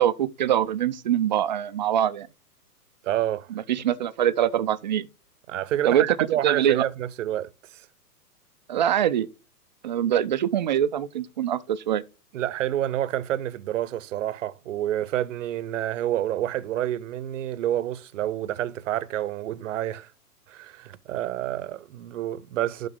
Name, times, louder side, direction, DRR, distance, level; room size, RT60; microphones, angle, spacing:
voice 1, 0.0-2.3 3.7-5.1 5.8-6.1 6.4-6.8 8.7-9.3 9.8-12.0, right 10 dB, 30° right, 0.4 m, -23 dB
voice 2, 3.0-3.5 5.5-7.9 12.3-20.1 20.5-22.9, right 12 dB, 55° right, 0.8 m, -28 dB
12.0 x 4.0 x 3.6 m
hypercardioid pair, 125°, 47 cm